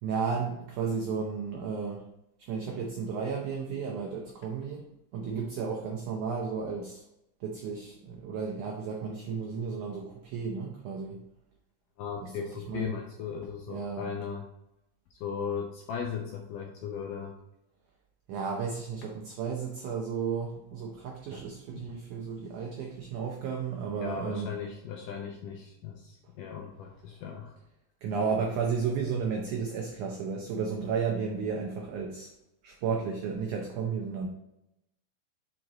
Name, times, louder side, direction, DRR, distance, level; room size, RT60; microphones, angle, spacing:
voice 1, 0.0-2.0 2.4-4.9 5.1-7.0 7.4-11.2 12.2-12.9 13.7-14.1 18.3-24.5 28.0-32.3 32.6-34.3, right 5 dB, 85° right, 1 dB, 1.7 m, -33 dB
voice 2, 12.0-14.4 15.1-17.4 21.7-22.0 24.0-27.5, left 7 dB, 80° left, 1 dB, 2.0 m, -37 dB
6.2 x 5.0 x 4.0 m, 0.86 s
omnidirectional pair, 4.5 m